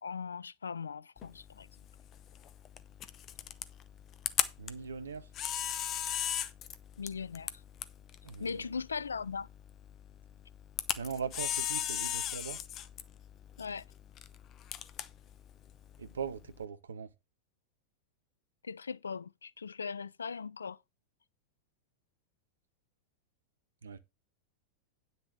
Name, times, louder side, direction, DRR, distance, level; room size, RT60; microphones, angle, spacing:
voice 1, 0.0-1.7 7.0-7.6 8.4-9.5 13.6-13.8 18.6-20.8, left 5 dB, 75° left, 0.4 m, -39 dB
Camera, 1.2-16.6, left 10 dB, 30° left, 0.9 m, -39 dB
voice 2, 4.6-5.3 8.2-8.7 11.0-12.6 16.0-17.1 23.8-24.0, right 6 dB, 70° right, 0.9 m, -40 dB
9.8 x 6.6 x 4.7 m
figure-of-eight pair, 90°, 0 cm